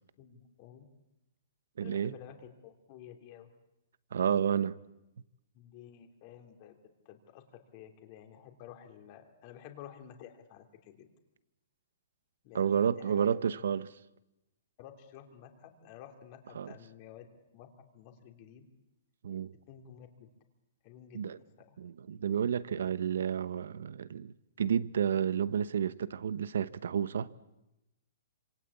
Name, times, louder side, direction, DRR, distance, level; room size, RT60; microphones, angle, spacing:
voice 1, 0.2-0.9 1.8-3.5 5.5-6.8 7.0-7.4 7.7-11.1 12.4-13.4 14.8-17.3 17.5-18.6 19.7-20.3 20.8-21.8, left 10 dB, 35° left, 3.1 m, -52 dB
voice 2, 1.8-2.1 4.1-4.8 12.5-13.9 16.5-16.7 19.2-19.5 21.1-21.4 21.8-27.3, right 8 dB, 80° right, 1.0 m, -31 dB
27.0 x 26.0 x 8.4 m
hypercardioid pair, 165°, 0 cm